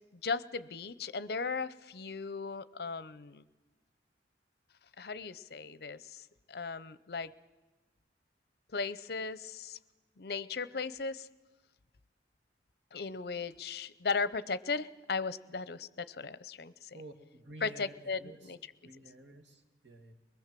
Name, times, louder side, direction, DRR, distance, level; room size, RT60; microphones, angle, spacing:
voice 1, 0.1-3.4 5.0-6.2 6.5-7.3 8.7-9.8 10.2-11.3 12.9-17.0 17.6-18.2 18.5-18.6, left 4 dB, 60° left, 17 dB, 0.7 m, -37 dB
voice 2, 16.9-18.5 18.8-20.1, right 1 dB, 85° right, 5 dB, 2.0 m, -51 dB
23.0 x 20.5 x 7.6 m, 1.2 s
head